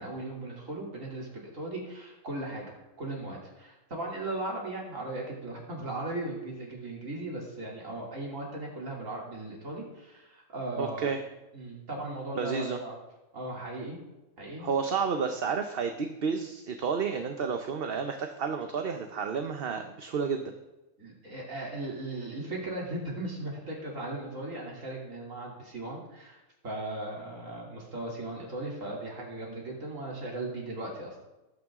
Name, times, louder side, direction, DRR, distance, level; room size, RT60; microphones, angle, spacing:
voice 1, 0.0-11.1 11.5-13.0 13.3-14.0 14.4-14.7 21.0-31.2, right 2 dB, 80° right, -2 dB, 3.4 m, -37 dB
voice 2, 10.8-11.2 12.3-12.8 14.6-20.5, right 5 dB, 50° right, 6 dB, 1.0 m, -31 dB
20.0 x 9.2 x 3.7 m, 1.0 s
omnidirectional pair, 1.3 m